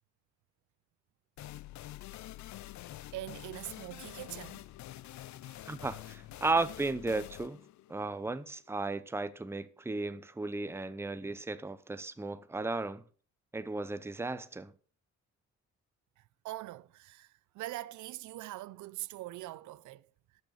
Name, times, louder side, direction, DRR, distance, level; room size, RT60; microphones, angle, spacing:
sound 1, 1.4-8.8, left 15 dB, 70° left, 0.6 m, -47 dB
voice 1, 3.1-4.7 5.4-5.7 16.2-20.1, right 16 dB, 75° right, 0.5 m, -43 dB
voice 2, 5.6-7.6 7.9-13.0 13.5-14.7, right 3 dB, 10° right, 0.8 m, -35 dB
12.0 x 6.3 x 6.7 m
cardioid pair, 90°, 30 cm